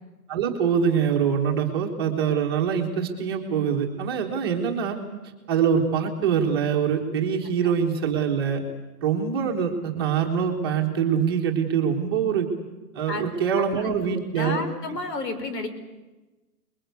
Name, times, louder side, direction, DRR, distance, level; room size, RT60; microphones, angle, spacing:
voice 1, 0.3-5.0 5.5-8.6 9.0-12.5 12.9-14.6, right 7 dB, 15° right, 1 dB, 1.3 m, -24 dB
voice 2, 13.5-13.9 14.4-15.7, left 3 dB, 80° left, 10 dB, 5.2 m, -31 dB
28.5 x 21.5 x 8.2 m, 1.1 s
hypercardioid pair, 180°, 48 cm